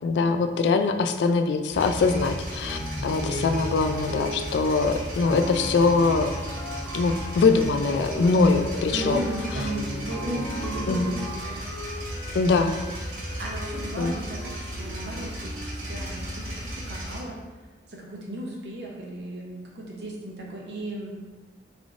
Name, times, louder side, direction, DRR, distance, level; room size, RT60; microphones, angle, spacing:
voice 1, 0.0-6.3 6.9-9.3 9.5-9.7 10.9-11.1 12.3-12.7 14.0-14.1, left 4 dB, 75° left, 7 dB, 0.3 m, -23 dB
sound 1, 1.7-17.2, equal, 55° right, 1.3 m, -35 dB
sound 2, 2.6-4.8 5.2-11.4, left 1 dB, 5° left, 0.4 m, -36 dB
voice 2, 8.9-11.6 13.4-17.4 17.9-21.1, right 1 dB, 70° right, -2 dB, 0.8 m, -35 dB
Wind instrument woodwind instrument, 9.7-16.7, equal, 35° left, 1.1 m, -42 dB
3.4 x 2.5 x 3.5 m, 1.3 s
head